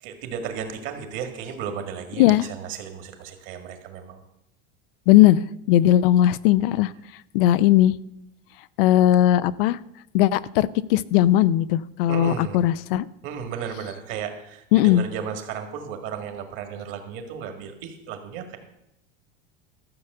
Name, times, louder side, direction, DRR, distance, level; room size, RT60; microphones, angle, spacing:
voice 1, 0.0-4.2 12.1-12.7 13.2-18.6, right 7 dB, 45° right, 6 dB, 1.9 m, -34 dB
voice 2, 5.1-6.9 7.3-7.9 8.8-9.8 10.1-13.1 14.7-15.0, left 13 dB, 70° left, 17 dB, 0.5 m, -18 dB
13.5 x 7.0 x 6.7 m, 0.86 s
supercardioid pair, 165°, 29 cm